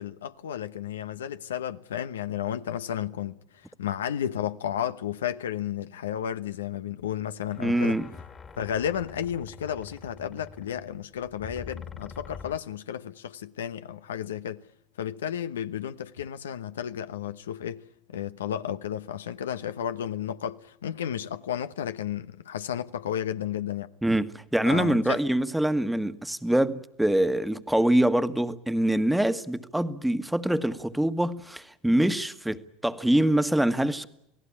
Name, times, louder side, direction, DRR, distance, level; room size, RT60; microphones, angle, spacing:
voice 1, 0.0-8.0 8.6-14.6 15.0-23.9 24.6-25.2, left 9 dB, 85° left, 0.9 m, -33 dB
sound 1, 7.0-7.1 7.5-12.6, left 5 dB, 25° left, 1.9 m, -45 dB
voice 2, 7.6-8.1 24.0-34.1, right 1 dB, 5° right, 1.5 m, -24 dB
28.5 x 18.0 x 8.6 m
hypercardioid pair, 85°, 0 cm